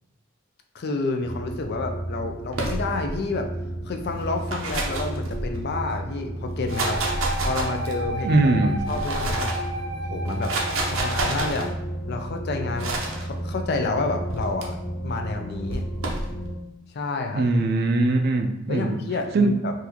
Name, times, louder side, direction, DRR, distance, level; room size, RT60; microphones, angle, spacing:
voice 1, 0.7-3.5 3.8-7.0 7.4-9.5 10.1-10.5 10.8-11.7 12.1-12.9 13.2-14.8 15.0-15.8 16.9-17.4 18.7-19.7, left 3 dB, 50° left, 4 dB, 0.4 m, -29 dB
sound 1, 1.2-16.5, right 1 dB, 5° right, 0.6 m, -33 dB
sound 2, 2.5-3.2 4.2-5.8 6.5-8.1 8.7-9.7 10.3-11.7 12.8-13.2 14.3-14.7 15.7-16.3, right 2 dB, 90° right, 0.6 m, -29 dB
Wind instrument woodwind instrument, 6.7-11.6, equal, 85° left, 1.5 m, -33 dB
voice 2, 8.2-8.9 17.3-19.0 19.3-19.5, right 2 dB, 50° right, 6 dB, 0.4 m, -21 dB
3.9 x 2.5 x 2.8 m, 0.94 s
head